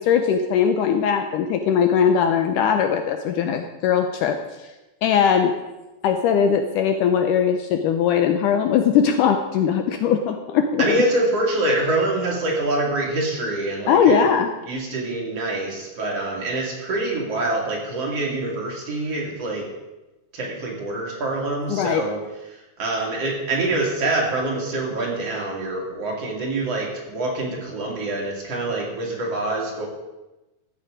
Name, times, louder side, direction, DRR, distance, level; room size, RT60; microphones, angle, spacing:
voice 1, 0.0-4.4 5.0-5.5 6.0-10.8 13.9-14.5 21.7-22.1, left 7 dB, 80° left, 6 dB, 2.0 m, -20 dB
voice 2, 10.8-14.3 14.7-19.7 20.3-22.2 22.5-29.9, right 2 dB, 45° right, -2 dB, 2.8 m, -25 dB
13.5 x 8.7 x 5.0 m, 1.0 s
omnidirectional pair, 4.2 m